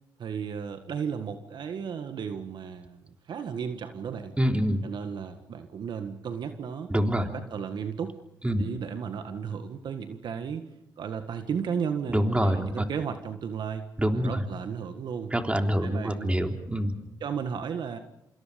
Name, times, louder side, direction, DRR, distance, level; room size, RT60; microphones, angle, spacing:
voice 1, 0.2-4.3 4.8-6.9 7.2-8.1 8.6-10.7 11.0-13.9 14.1-15.3 15.8-16.4 17.2-18.0, right 7 dB, 65° right, 8 dB, 1.7 m, -34 dB
voice 2, 4.4-4.8 6.9-7.3 8.4-8.6 12.1-12.8 14.0-14.3 15.3-16.9, equal, 15° right, 4 dB, 3.5 m, -25 dB
27.0 x 26.5 x 5.3 m, 0.85 s
supercardioid pair, 55°, 8 cm